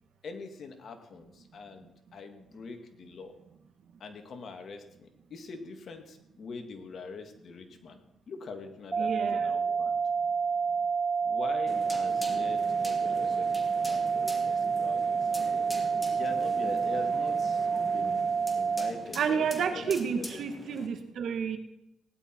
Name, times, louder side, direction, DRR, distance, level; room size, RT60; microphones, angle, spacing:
voice 1, 0.2-3.4 4.0-8.0 8.3-10.0 11.2-15.2 16.1-18.2 18.5-20.4, left 4 dB, 55° left, 5 dB, 2.3 m, -43 dB
sound 1, 8.9-18.9, right 5 dB, 25° right, 2.1 m, -28 dB
voice 2, 9.0-9.5 19.2-21.6, right 6 dB, 65° right, 6 dB, 1.9 m, -30 dB
sound 2, 11.7-20.9, left 1 dB, 15° left, 2.7 m, -43 dB
17.5 x 11.0 x 4.7 m, 0.84 s
cardioid pair, 90°, 0 cm